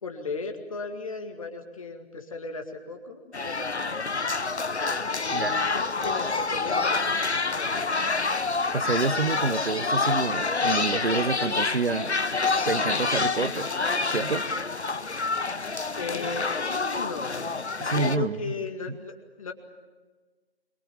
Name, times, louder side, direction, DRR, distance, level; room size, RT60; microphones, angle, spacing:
voice 1, 0.0-4.0 5.1-8.1 16.0-17.5 17.8-19.5, left 4 dB, 30° left, 4 dB, 2.2 m, -36 dB
sound 1, 3.3-18.2, left 4 dB, 85° left, 1.0 m, -27 dB
voice 2, 8.7-12.1 12.6-13.7 14.1-14.5 17.8-18.4, right 4 dB, 65° right, 14 dB, 1.0 m, -28 dB
27.0 x 23.0 x 7.3 m, 1.3 s
figure-of-eight pair, 160°, 33 cm